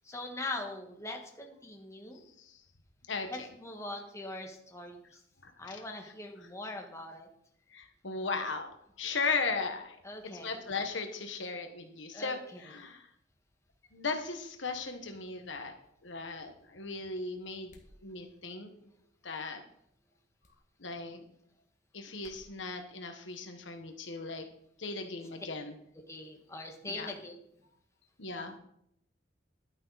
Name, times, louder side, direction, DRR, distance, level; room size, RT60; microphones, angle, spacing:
voice 1, 0.0-2.2 3.3-5.2 5.6-7.3 9.0-9.1 10.0-10.6 12.1-12.6 26.1-27.4, left 2 dB, 15° left, 2 dB, 1.6 m, -42 dB
voice 2, 5.4-5.8 7.7-8.7 9.0-10.0 10.4-13.1 13.9-15.7 16.0-18.9 19.2-19.6 20.8-21.2 21.9-24.5 24.8-25.7 26.8-27.1 28.2-28.6, left 4 dB, 70° left, 5 dB, 1.3 m, -37 dB
sound 1, 17.7-18.0 20.4-20.6 22.2-22.5, left 1 dB, 40° left, 1.8 m, -58 dB
11.5 x 9.9 x 4.1 m, 0.72 s
head